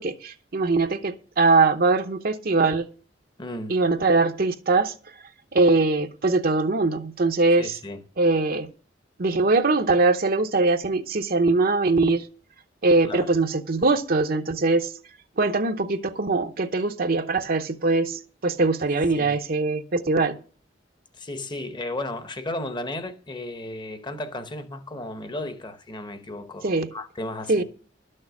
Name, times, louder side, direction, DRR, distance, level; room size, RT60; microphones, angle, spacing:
voice 1, 0.0-2.9 3.7-4.9 5.5-7.8 8.2-8.7 9.2-12.3 12.8-14.9 15.4-20.4 26.6-26.9 27.5-27.6, right 3 dB, 55° right, 0.8 m, -22 dB
voice 2, 3.4-3.8 7.6-8.0 13.0-13.3 19.1-19.4 21.1-27.6, left 1 dB, 25° left, 1.0 m, -34 dB
12.0 x 6.6 x 7.1 m
head